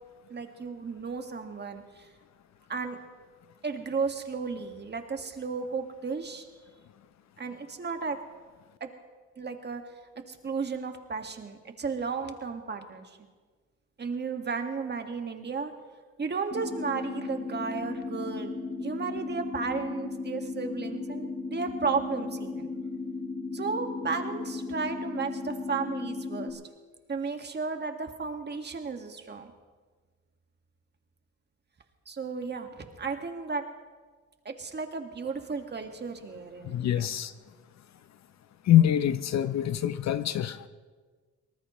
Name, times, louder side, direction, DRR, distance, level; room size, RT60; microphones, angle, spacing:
voice 1, 0.3-2.1 2.7-3.0 3.6-6.5 7.4-8.2 8.8-8.9 9.4-9.8 10.3-13.2 14.0-15.7 16.2-22.7 23.5-26.6 27.1-29.5 32.1-33.6 34.5-37.1, right 5 dB, 35° right, 5 dB, 1.8 m, -34 dB
sound 1, 16.5-26.5, left 3 dB, 45° left, 6.0 m, -36 dB
voice 2, 36.6-37.3 38.6-40.7, left 11 dB, 65° left, 12 dB, 0.7 m, -24 dB
24.0 x 19.0 x 3.1 m, 1.5 s
cardioid pair, 90°, 30 cm